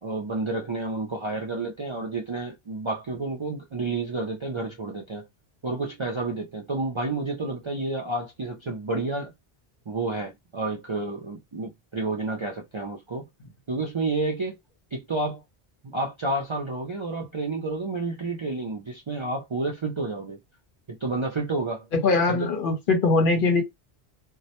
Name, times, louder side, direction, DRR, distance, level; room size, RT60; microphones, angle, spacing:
voice 1, 0.0-5.3 5.6-9.3 9.9-13.3 13.7-14.6 14.9-15.4 15.8-20.4 20.9-21.9 22.3-22.5, right 3 dB, 45° right, 0.4 m, -30 dB
voice 2, 21.9-23.6, left 3 dB, 60° left, 0.8 m, -21 dB
2.2 x 2.1 x 2.8 m
omnidirectional pair, 1.1 m